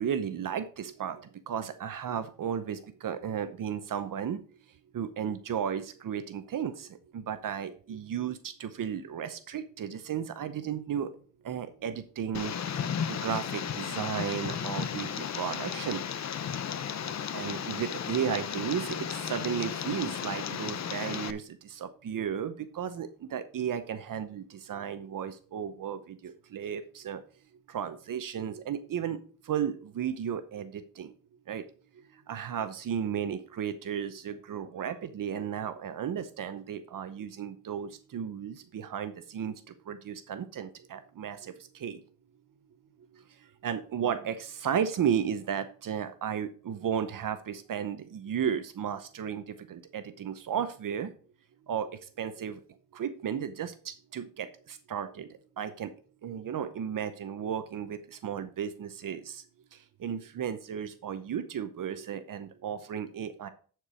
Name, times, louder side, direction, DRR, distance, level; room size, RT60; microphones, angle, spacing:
voice 1, 0.0-4.4 4.9-11.1 11.4-16.0 17.1-27.2 27.7-31.1 31.5-31.7 32.1-42.0 43.1-51.1 51.7-52.6 52.9-55.9 56.2-59.4 59.7-63.5, right 8 dB, 70° right, 12 dB, 0.8 m, -34 dB
Tick, 12.3-21.3, left 8 dB, 50° left, 0.7 m, -34 dB
9.9 x 4.7 x 4.9 m, 0.41 s
cardioid pair, 95°, 34 cm